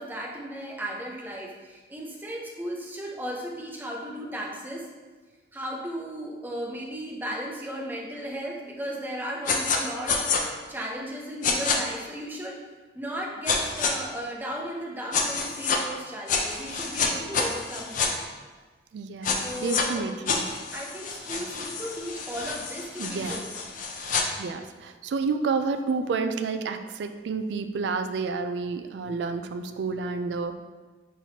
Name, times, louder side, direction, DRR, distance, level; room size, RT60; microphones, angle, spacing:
voice 1, 0.0-4.9 5.5-10.3 10.7-12.6 12.9-18.2 19.4-20.0 20.7-23.4 23.7-23.8, equal, 10° right, -2 dB, 0.5 m, -35 dB
sound 1, 9.5-9.8 10.1-10.4 11.4-11.8 13.5-13.9 15.1-15.8 16.3-18.1 19.2-19.8 20.3-24.2, left 5 dB, 45° left, 0.4 m, -28 dB
voice 2, 18.9-20.5 21.3-21.5 23.0-23.4 24.4-30.5, right 4 dB, 70° right, 9 dB, 0.3 m, -30 dB
5.7 x 3.0 x 2.8 m, 1.3 s
head